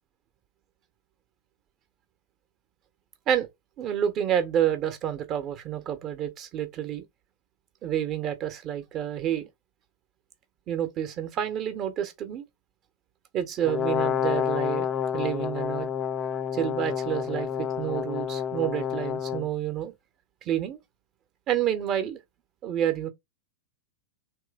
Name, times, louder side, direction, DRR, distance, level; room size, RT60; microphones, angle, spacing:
voice 1, 3.8-7.0 7.8-9.5 10.7-12.4 13.3-14.9 15.1-15.9 16.5-19.9 20.4-20.8 21.5-22.2 22.6-23.1, right 10 dB, 35° right, 0.6 m, -29 dB
Brass instrument, 13.6-19.5, left 8 dB, 25° left, 0.3 m, -29 dB
3.2 x 3.0 x 2.3 m
figure-of-eight pair, 95°, 0 cm